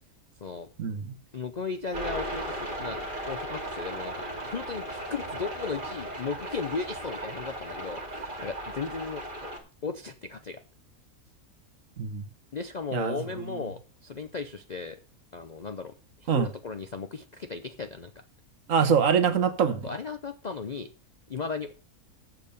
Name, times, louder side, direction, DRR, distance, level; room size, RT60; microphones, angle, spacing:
voice 1, 0.8-1.1 12.0-12.2 12.9-13.2 16.3-16.5 18.7-19.9, right 6 dB, 60° right, 1.3 m, -24 dB
voice 2, 1.3-3.0 3.3-9.5 9.8-10.6 12.5-15.0 15.3-15.9 16.2-18.1 19.8-20.9 21.3-21.7, left 5 dB, 50° left, 0.5 m, -36 dB
sound 1, 1.9-9.6, right 1 dB, 35° right, 2.2 m, -36 dB
7.7 x 7.0 x 6.7 m
omnidirectional pair, 1.6 m